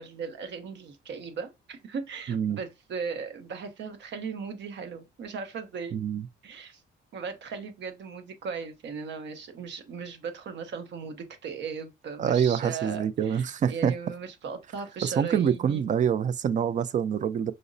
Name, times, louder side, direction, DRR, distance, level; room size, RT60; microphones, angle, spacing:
voice 1, 0.0-6.0 6.4-6.8 7.1-15.8, right 5 dB, 65° right, 0.8 m, -37 dB
voice 2, 2.3-2.6 5.9-6.3 12.2-13.9 15.0-17.5, right 8 dB, 40° right, 0.4 m, -26 dB
4.9 x 2.0 x 2.6 m
cardioid pair, 90°, 20 cm